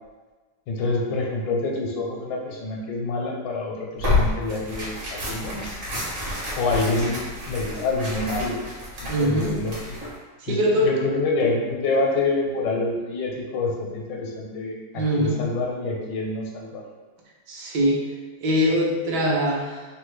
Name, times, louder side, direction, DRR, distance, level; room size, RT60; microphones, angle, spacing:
voice 1, 0.7-5.6 6.5-8.6 9.0-10.0 10.5-16.8, left 3 dB, 85° left, -1 dB, 1.3 m, -27 dB
Tearing, 4.0-10.2, left 2 dB, 55° right, 1.2 m, -29 dB
voice 2, 9.1-9.8 10.4-10.9 14.9-15.4 17.5-18.0 18.4-19.9, equal, 75° right, -3 dB, 1.2 m, -23 dB
3.3 x 2.1 x 3.1 m, 1.3 s
omnidirectional pair, 1.9 m